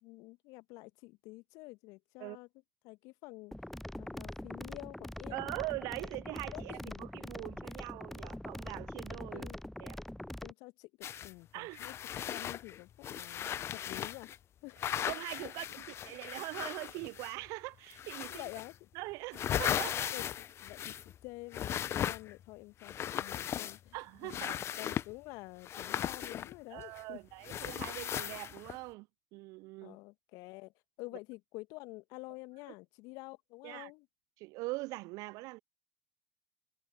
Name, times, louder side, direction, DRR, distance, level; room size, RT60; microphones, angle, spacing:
voice 1, 0.0-2.5 2.8-3.5 4.0-5.6 6.5-7.0 7.4-7.5 8.9-9.6 10.4-11.9 12.3-14.3 14.6-14.8 15.4-15.5 18.3-18.9 19.8-20.2 20.6-21.8 22.1-24.0 24.2-27.2 29.8-30.7 31.0-34.1, left 24 dB, 55° left, 1.7 m, -49 dB
sound 1, 3.5-10.5, left 1 dB, 5° left, 0.6 m, -43 dB
voice 2, 5.3-9.5 9.8-10.0 11.5-11.9 14.9-15.7 16.0-18.4 18.9-20.1 23.9-24.6 26.7-30.0 33.6-33.9 34.4-35.6, right 23 dB, 55° right, 0.6 m, -42 dB
sound 2, 11.0-11.3 11.7-14.4 14.8-17.5 17.9-18.8 19.1-21.2 21.5-22.4 22.8-24.0 24.3-25.1 25.6-27.0 27.4-28.8, left 10 dB, 40° left, 1.0 m, -37 dB
figure-of-eight pair, 70°, 7 cm